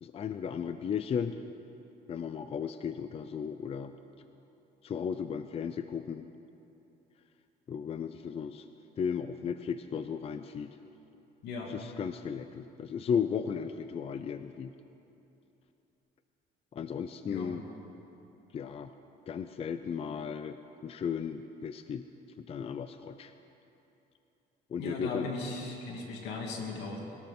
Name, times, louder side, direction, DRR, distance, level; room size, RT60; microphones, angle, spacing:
voice 1, 0.0-1.4 2.1-3.9 4.8-6.3 7.7-8.6 9.0-10.8 11.7-14.7 16.7-17.6 18.5-18.9 19.3-20.6 20.8-22.1 22.4-23.3 24.7-25.3, left 7 dB, 35° left, 10 dB, 0.5 m, -35 dB
voice 2, 17.3-17.6 24.8-27.0, left 3 dB, 85° left, 0 dB, 2.6 m, -37 dB
21.0 x 13.5 x 4.3 m, 2.9 s
cardioid pair, 110°, 17 cm